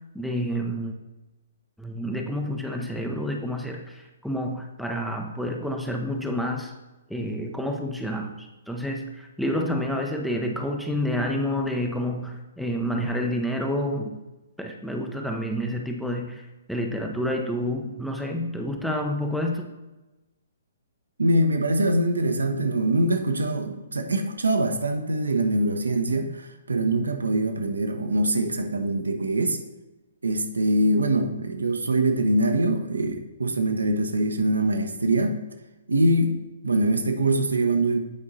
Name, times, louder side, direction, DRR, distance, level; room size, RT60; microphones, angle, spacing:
voice 1, 0.1-0.9 1.8-6.7 7.1-14.2 14.6-16.4 16.7-19.7, equal, ahead, 2 dB, 0.6 m, -29 dB
voice 2, 21.2-29.6 30.2-35.4 35.9-36.4 36.6-38.0, right 1 dB, 70° right, 5 dB, 0.9 m, -23 dB
8.5 x 4.8 x 4.1 m, 1.1 s
figure-of-eight pair, 125°, 0 cm